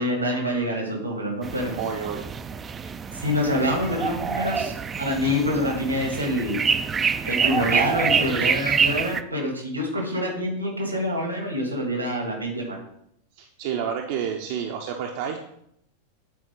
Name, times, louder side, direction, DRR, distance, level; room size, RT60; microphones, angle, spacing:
voice 1, 0.0-1.8 3.1-4.7 5.0-6.7 7.2-12.8, left 1 dB, 85° right, 1 dB, 2.2 m, -26 dB
sound 1, 1.4-9.2, right 6 dB, 20° right, 0.4 m, -26 dB
voice 2, 1.7-2.3 13.4-15.4, right 7 dB, 50° right, 3 dB, 0.7 m, -29 dB
8.8 x 4.4 x 3.9 m, 0.72 s
figure-of-eight pair, 90°, 0 cm